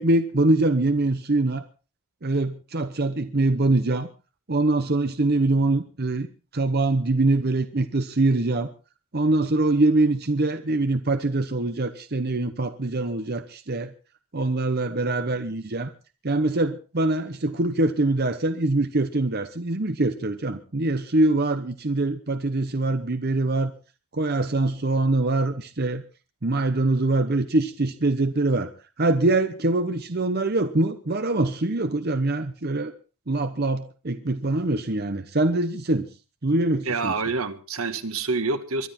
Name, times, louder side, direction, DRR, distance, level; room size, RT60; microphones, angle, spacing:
voice 1, 0.0-1.6 2.2-4.1 4.5-6.3 6.5-8.7 9.1-13.9 14.3-15.9 16.2-23.7 24.1-26.0 26.4-28.7 29.0-32.9 33.3-36.1 36.4-37.1, right 2 dB, 45° right, 9 dB, 1.0 m, -23 dB
voice 2, 36.8-38.9, right 3 dB, 80° right, 9 dB, 1.7 m, -27 dB
23.0 x 11.5 x 4.4 m, 0.35 s
head